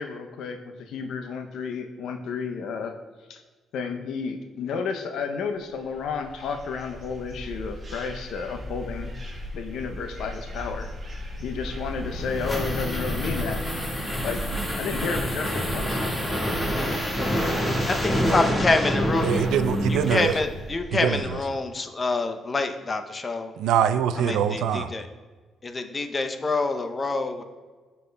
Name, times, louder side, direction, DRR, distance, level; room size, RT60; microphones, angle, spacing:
voice 1, 0.0-3.0 3.3-3.4 3.7-9.1 9.5-10.9 11.4-13.6 14.2-14.4 14.8-16.3, left 5 dB, 80° left, 6 dB, 0.6 m, -32 dB
sound 1, 5.7-21.4, equal, 35° right, 1.8 m, -37 dB
sound 2, 11.8-20.6, equal, 15° left, 1.6 m, -27 dB
voice 2, 18.2-19.4 20.1-23.5 24.3-25.0 25.6-27.4, left 3 dB, 30° left, 7 dB, 0.6 m, -26 dB
voice 3, 19.2-20.4 20.9-21.4 23.6-24.9, right 8 dB, 85° right, 11 dB, 0.3 m, -24 dB
12.0 x 4.2 x 2.2 m, 1.4 s
cardioid pair, 90°, 0 cm